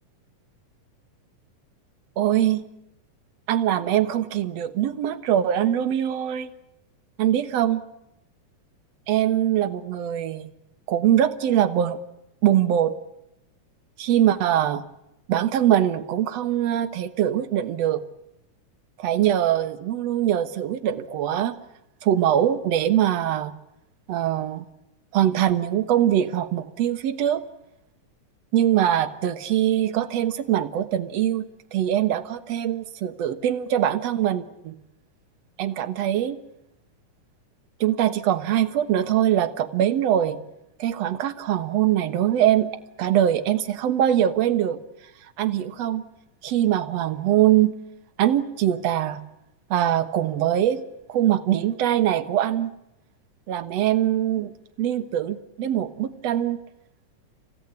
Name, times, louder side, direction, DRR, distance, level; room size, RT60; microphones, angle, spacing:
voice 1, 2.2-2.6 3.5-6.5 7.2-7.9 9.1-10.5 10.9-12.0 12.4-13.0 14.0-14.9 15.3-18.0 19.0-21.6 22.0-23.5 24.1-24.7 25.1-27.5 28.5-34.8 35.6-36.4 37.8-40.4 40.8-42.7 43.0-44.8 45.4-46.1 46.4-47.7 48.2-49.2 49.7-50.8 51.1-52.7 53.5-56.6, right 11 dB, 60° right, 11 dB, 2.1 m, -22 dB
29.0 x 16.0 x 9.5 m, 0.89 s
omnidirectional pair, 3.9 m